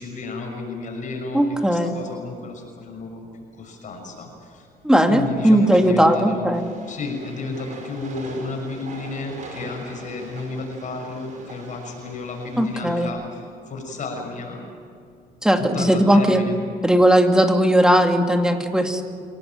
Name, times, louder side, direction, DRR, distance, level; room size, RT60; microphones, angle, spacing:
voice 1, 0.0-3.3 3.5-4.7 5.1-6.6 6.9-14.7 15.6-16.5, left 3 dB, 50° left, 2 dB, 6.3 m, -32 dB
voice 2, 1.3-1.9 4.8-6.7 12.6-13.1 15.4-16.4 16.8-19.0, equal, 5° right, 4 dB, 2.4 m, -17 dB
Train, 6.5-13.1, right 3 dB, 50° right, 5.5 m, -42 dB
26.5 x 18.5 x 9.2 m, 2.3 s
cardioid pair, 110°, 17 cm